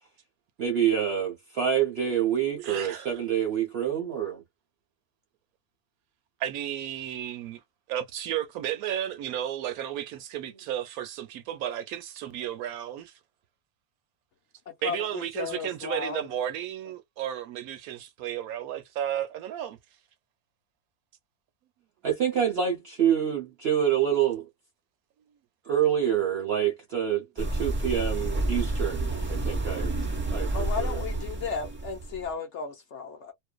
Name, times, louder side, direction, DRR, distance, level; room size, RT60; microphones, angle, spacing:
voice 1, 0.6-4.4 22.0-24.4 25.7-29.9 30.3-30.5 30.8-31.0, right 9 dB, 60° right, 0.7 m, -27 dB
voice 2, 2.6-3.2 6.4-7.6 7.9-13.1 14.8-19.8, right 11 dB, 75° right, 1.0 m, -33 dB
voice 3, 14.7-16.3 30.5-33.3, left 5 dB, 60° left, 0.9 m, -34 dB
sound 1, 27.4-32.3, right 2 dB, 15° right, 0.4 m, -29 dB
2.5 x 2.2 x 2.2 m
omnidirectional pair, 1.7 m